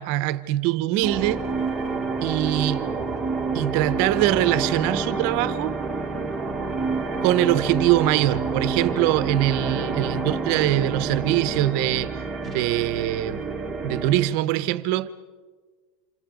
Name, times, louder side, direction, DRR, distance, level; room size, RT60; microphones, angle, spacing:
voice 1, 0.0-1.5 2.2-2.9 3.5-5.8 7.2-12.1 12.4-13.5 13.8-15.1, right 14 dB, 45° right, 0.9 m, -23 dB
sound 1, 1.0-14.4, right 4 dB, 5° right, 1.7 m, -28 dB
29.5 x 28.0 x 5.3 m
supercardioid pair, 165°, 0 cm